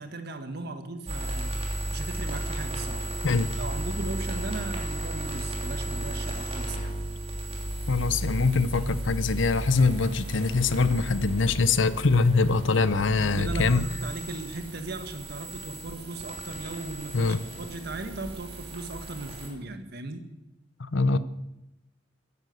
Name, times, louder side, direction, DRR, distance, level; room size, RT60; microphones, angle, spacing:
voice 1, 0.0-1.6 1.9-3.1 3.6-6.9 12.9-20.2, right 2 dB, 55° right, 8 dB, 1.7 m, -37 dB
sound 1, 1.1-19.5, right 1 dB, 30° right, 3.2 m, -34 dB
voice 2, 7.9-13.9 17.1-17.4 20.8-21.2, left 4 dB, 75° left, 15 dB, 0.8 m, -23 dB
15.0 x 11.0 x 7.9 m, 0.92 s
head